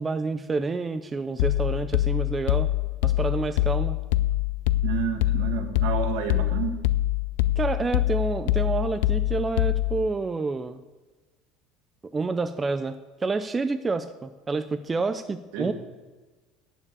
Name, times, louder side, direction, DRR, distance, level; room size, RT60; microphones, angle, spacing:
voice 1, 0.0-2.7 3.0-4.0 7.6-10.8 12.1-15.7, right 3 dB, 15° right, 10 dB, 0.4 m, -28 dB
sound 1, 1.4-10.1, left 16 dB, 80° left, 0.4 m, -25 dB
voice 2, 4.8-6.8 15.5-15.7, right 8 dB, 70° right, 5 dB, 1.7 m, -30 dB
8.9 x 7.2 x 8.5 m, 1.3 s
cardioid pair, 175°, 0 cm